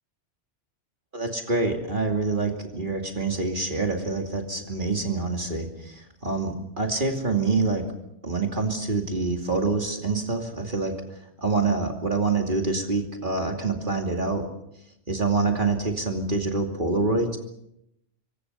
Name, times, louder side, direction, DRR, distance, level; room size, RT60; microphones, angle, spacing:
voice 1, 1.1-7.9 8.2-10.9 11.4-14.5 15.1-17.4, right 3 dB, 45° right, 2 dB, 2.8 m, -26 dB
28.0 x 23.5 x 5.6 m, 0.81 s
omnidirectional pair, 1.2 m